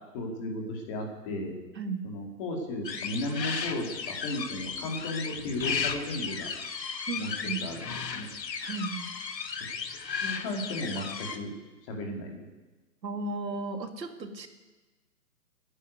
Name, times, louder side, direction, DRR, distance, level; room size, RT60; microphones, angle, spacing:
voice 1, 0.1-1.5 2.0-6.5 7.2-8.3 10.2-11.5 11.9-12.5, left 1 dB, 20° left, 1 dB, 2.3 m, -35 dB
voice 2, 1.8-2.1 7.1-7.6 8.6-9.1 13.0-14.5, right 3 dB, 85° right, 5 dB, 2.4 m, -35 dB
sound 1, 2.8-11.4, left 6 dB, 80° left, 1.8 m, -35 dB
15.0 x 9.9 x 9.4 m, 1.2 s
hypercardioid pair, 170°, 49 cm